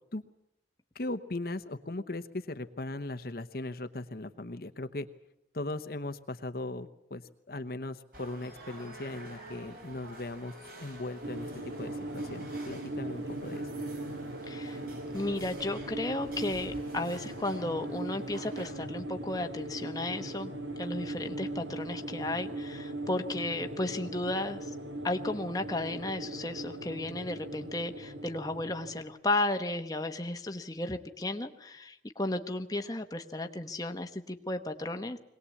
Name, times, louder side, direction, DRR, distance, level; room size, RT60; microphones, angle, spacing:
voice 1, 0.9-5.1 5.5-10.5 10.8-11.5 11.8-13.7, left 2 dB, 55° left, 9 dB, 1.0 m, -38 dB
sound 1, 8.1-18.7, right 1 dB, 50° right, 5.0 m, -50 dB
sound 2, 11.2-29.0, right 1 dB, 75° right, 2.0 m, -39 dB
voice 2, 14.5-14.8 15.1-20.5 20.8-24.7 25.0-35.2, left 2 dB, 20° left, 6 dB, 1.1 m, -34 dB
22.5 x 19.0 x 8.5 m, 0.80 s
head